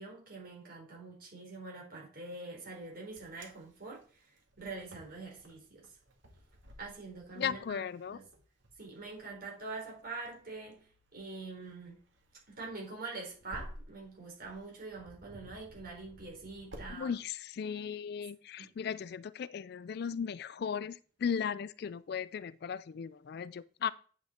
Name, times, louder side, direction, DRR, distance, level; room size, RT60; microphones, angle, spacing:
voice 1, 0.0-4.0 4.6-5.8 6.8-8.2 8.8-10.8 11.1-12.0 12.5-17.2, right 3 dB, 50° right, 3.9 m, -44 dB
Wind, 2.8-16.9, equal, 75° right, 1.9 m, -54 dB
voice 2, 7.4-8.2 16.9-23.9, left 7 dB, 55° left, 0.3 m, -37 dB
9.0 x 5.8 x 4.3 m
head